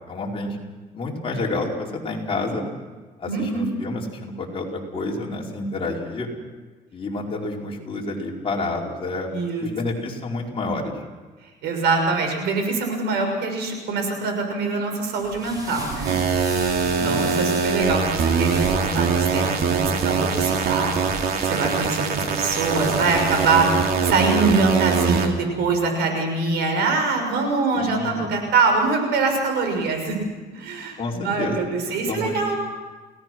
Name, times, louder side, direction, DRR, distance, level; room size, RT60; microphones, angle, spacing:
voice 1, 0.1-0.6 0.9-2.7 3.2-6.3 6.9-9.3 9.6-10.9 17.0-17.2 22.1-22.4 27.7-28.3 31.0-31.6 32.1-32.3, left 2 dB, 35° left, -2 dB, 4.9 m, -29 dB
voice 2, 3.3-3.7 9.3-9.7 11.6-16.2 16.8-20.9 21.4-30.2 30.5-32.6, right 3 dB, 80° right, 4 dB, 6.3 m, -24 dB
sound 1, 15.1-24.6, right 1 dB, 20° right, 7.7 m, -37 dB
sound 2, 16.0-25.3, right 5 dB, 65° right, 2.8 m, -23 dB
29.0 x 18.0 x 6.2 m, 1.3 s
cardioid pair, 110°, 17 cm